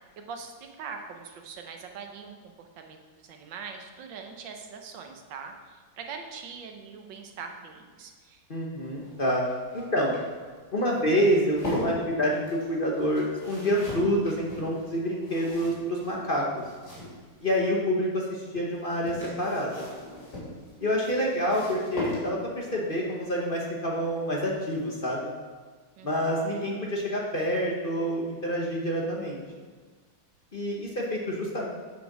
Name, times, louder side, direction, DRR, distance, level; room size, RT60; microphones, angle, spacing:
voice 1, 0.2-8.4 26.0-26.7, right 5 dB, 85° right, 4 dB, 1.6 m, -42 dB
voice 2, 8.5-9.4 9.7-10.1 10.7-16.5 17.4-19.9 20.8-25.3 26.0-29.4 30.5-31.7, equal, 35° left, -2 dB, 1.1 m, -27 dB
sound 1, 8.8-17.6 18.7-22.7 24.3-24.6 24.9-25.0, left 2 dB, 55° left, 3.5 m, -39 dB
8.3 x 5.2 x 6.0 m, 1.5 s
omnidirectional pair, 2.0 m